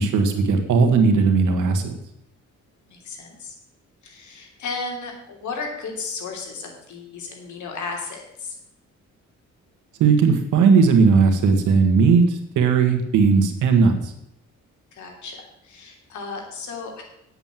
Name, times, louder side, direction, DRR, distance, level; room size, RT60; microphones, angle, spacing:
voice 1, 0.0-2.0 10.0-14.1, right 5 dB, 90° right, 5 dB, 1.8 m, -17 dB
voice 2, 2.9-3.5 4.0-8.5 14.9-17.0, left 4 dB, 75° left, 2 dB, 3.3 m, -34 dB
9.1 x 8.0 x 7.5 m, 0.80 s
cardioid pair, 95°, 30 cm